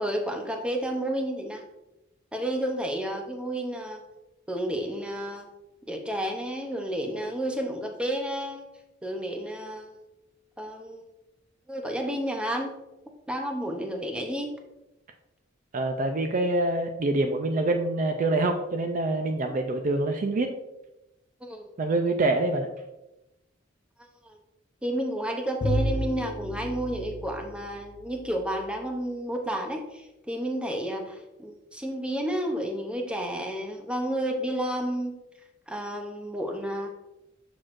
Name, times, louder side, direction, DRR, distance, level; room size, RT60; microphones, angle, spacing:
voice 1, 0.0-1.6 2.3-4.0 4.5-5.5 5.9-8.6 9.0-10.0 10.6-11.1 11.7-12.7 13.3-14.5 21.4-21.7 24.2-24.4 24.8-35.1 35.7-36.9, right 1 dB, 5° right, 3 dB, 0.7 m, -31 dB
voice 2, 15.7-20.5 21.8-22.7, right 2 dB, 40° right, 6 dB, 0.4 m, -25 dB
Bowed string instrument, 25.6-28.7, left 1 dB, 45° left, 0.7 m, -32 dB
6.3 x 6.1 x 2.5 m, 0.95 s
head